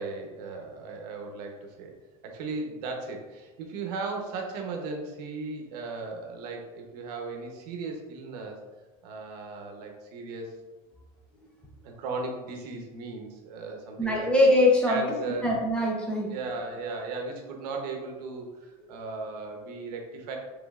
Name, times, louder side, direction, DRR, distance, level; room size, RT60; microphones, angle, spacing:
voice 1, 0.0-1.9 2.2-8.6 9.0-10.6 11.8-14.3 14.9-15.5 16.3-20.4, right 3 dB, 85° right, 2 dB, 0.9 m, -36 dB
voice 2, 14.0-16.3, left 1 dB, 5° left, -3 dB, 0.5 m, -23 dB
5.2 x 3.3 x 2.4 m, 1.2 s
cardioid pair, 175°, 20 cm